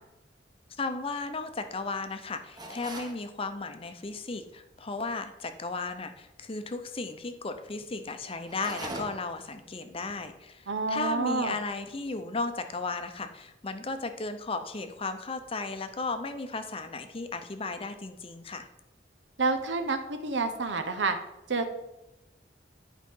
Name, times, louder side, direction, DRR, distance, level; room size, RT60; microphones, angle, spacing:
voice 1, 0.8-18.7, left 3 dB, 30° left, 8 dB, 0.6 m, -35 dB
sound 1, 2.6-3.2 8.4-9.4, right 1 dB, 25° right, 1.0 m, -39 dB
voice 2, 10.7-11.6 19.4-21.2 21.5-21.7, right 3 dB, 90° right, 6 dB, 0.9 m, -28 dB
10.0 x 5.1 x 3.7 m, 0.94 s
head